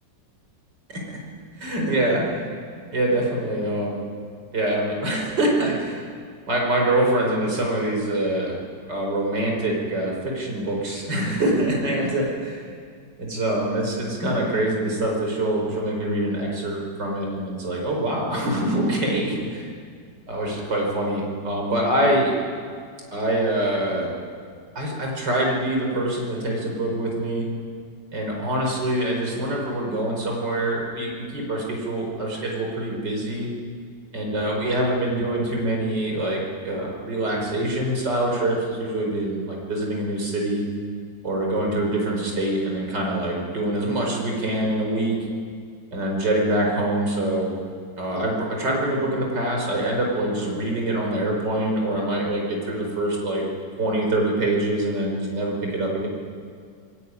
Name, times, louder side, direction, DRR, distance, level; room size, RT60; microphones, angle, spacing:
voice 1, 1.6-2.5 2.9-4.0 4.5-6.0 6.5-8.6 8.9-12.7 13.2-19.7 20.3-22.3 23.1-24.1 24.8-27.5 28.1-33.5 34.1-40.6 41.2-45.2 45.9-47.5 48.0-53.4 53.8-56.1, right 1 dB, 65° right, -1 dB, 5.8 m, -25 dB
26.5 x 21.5 x 9.8 m, 2.1 s
omnidirectional pair, 2.0 m